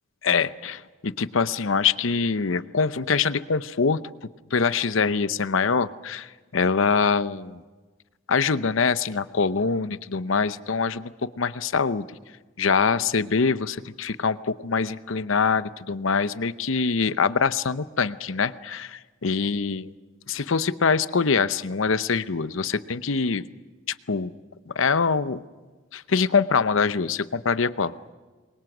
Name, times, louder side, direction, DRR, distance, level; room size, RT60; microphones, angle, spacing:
voice 1, 0.2-4.0 4.5-7.6 8.3-11.1 11.4-12.0 12.6-19.9 20.3-23.4 23.9-24.3 24.7-25.4 25.9-27.9, left 5 dB, 75° left, 14 dB, 0.8 m, -24 dB
28.0 x 23.0 x 6.1 m, 1.3 s
head